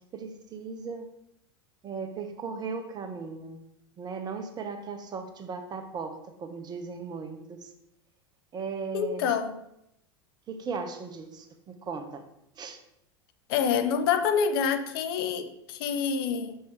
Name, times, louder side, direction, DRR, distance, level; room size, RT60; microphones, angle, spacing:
voice 1, 0.1-1.1 1.8-3.6 4.0-7.7 8.5-9.3 10.5-12.2 12.5-12.8, right 5 dB, 30° right, 6 dB, 1.2 m, -37 dB
voice 2, 8.9-9.5 13.5-16.6, left 7 dB, 60° left, 9 dB, 0.8 m, -27 dB
7.0 x 6.1 x 4.8 m, 0.79 s
figure-of-eight pair, 85°, 14 cm